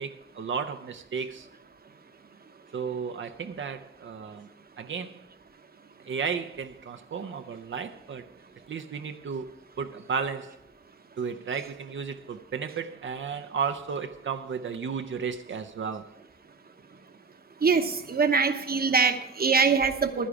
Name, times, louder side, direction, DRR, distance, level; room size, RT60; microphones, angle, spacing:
voice 1, 0.0-1.5 2.7-4.5 4.8-5.2 6.0-8.3 8.7-10.6 11.2-16.1, right 6 dB, 75° right, 0.6 m, -33 dB
voice 2, 17.6-20.3, right 5 dB, 50° right, 0.9 m, -23 dB
11.5 x 10.0 x 4.8 m
wide cardioid pair, 90°, 20 cm